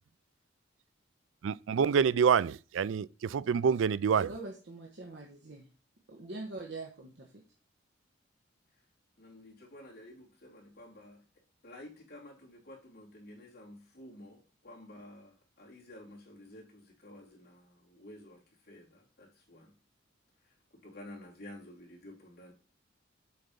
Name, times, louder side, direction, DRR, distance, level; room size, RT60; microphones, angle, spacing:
voice 1, 1.4-4.3, right 6 dB, 85° right, 0.4 m, -27 dB
voice 2, 4.3-5.7 6.1-7.4, right 2 dB, 65° right, 1.2 m, -43 dB
voice 3, 9.2-11.2 11.6-18.4 18.7-19.7 20.7-22.5, left 1 dB, 55° left, 3.3 m, -51 dB
7.7 x 4.5 x 5.2 m
head